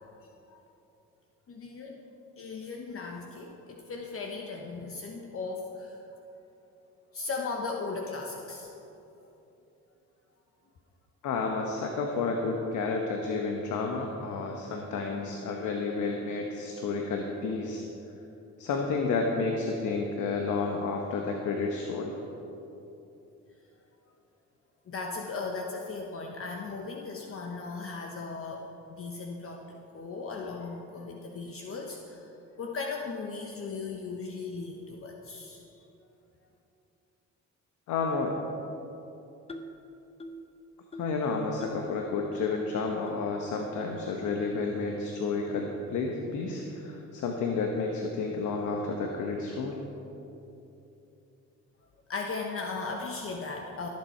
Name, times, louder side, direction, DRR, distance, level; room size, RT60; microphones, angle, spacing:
voice 1, 1.5-2.0 2.4-6.0 7.1-8.7 24.9-28.6 29.0-32.2 32.6-35.6 52.1-53.9, left 4 dB, 45° left, 1 dB, 1.0 m, -37 dB
voice 2, 11.2-17.8 18.6-22.2 37.9-38.4 41.0-49.8, left 4 dB, 80° left, 2 dB, 1.1 m, -31 dB
sound 1, 39.5-39.8 40.2-40.5 40.9-41.2 41.6-41.9 42.3-42.4 43.1-43.2 43.8-43.9 44.6-44.7 45.3-45.5, equal, 20° left, 0.8 m, -44 dB
17.0 x 7.5 x 4.4 m, 2.9 s
cardioid pair, 90°, 30 cm